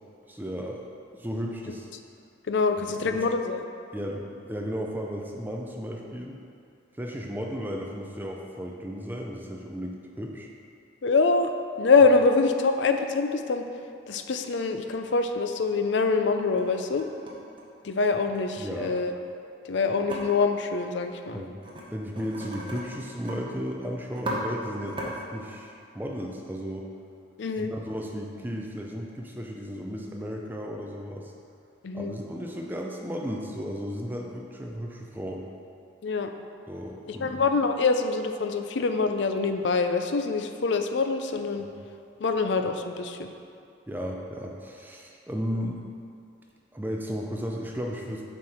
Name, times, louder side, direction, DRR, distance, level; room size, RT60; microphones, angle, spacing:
voice 1, 0.3-0.8 1.1-1.9 3.0-3.2 3.9-6.4 7.0-10.5 18.6-19.0 21.3-21.6 21.9-26.9 27.6-31.3 31.9-35.4 36.7-37.4 41.6-41.7 43.9-45.8 46.7-48.2, equal, 10° right, 0 dB, 0.4 m, -34 dB
voice 2, 2.5-3.7 11.0-11.5 11.8-13.6 14.1-17.1 17.8-19.2 19.7-21.4 27.4-27.7 31.8-32.2 36.0-36.3 37.1-41.7 42.2-43.3, left 4 dB, 65° left, 7 dB, 0.4 m, -25 dB
sound 1, 16.3-16.6 16.9-18.4 20.1-20.2 21.6-21.8 22.1-23.4 23.7-23.8 24.1-24.4 24.8-25.1, right 1 dB, 25° right, 0.8 m, -36 dB
7.3 x 4.4 x 4.9 m, 2.5 s
head